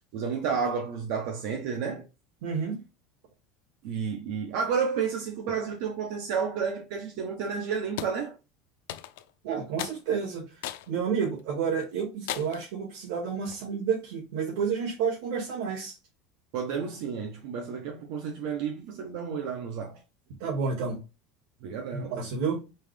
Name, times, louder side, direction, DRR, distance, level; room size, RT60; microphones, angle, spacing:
voice 1, 0.1-2.1 3.8-8.3 16.5-20.0 21.6-22.1, right 6 dB, 55° right, 0.9 m, -31 dB
voice 2, 2.4-2.8 9.4-10.6 10.9-16.0 20.4-21.0 21.9-22.6, right 6 dB, 80° right, 2.1 m, -30 dB
sound 1, 8.0-8.2 8.9-9.3 9.8-10.0 10.6-10.9 11.4-11.5 12.3-12.7, left 13 dB, 80° left, 0.4 m, -36 dB
5.5 x 2.5 x 3.4 m
cardioid pair, 175°, 0 cm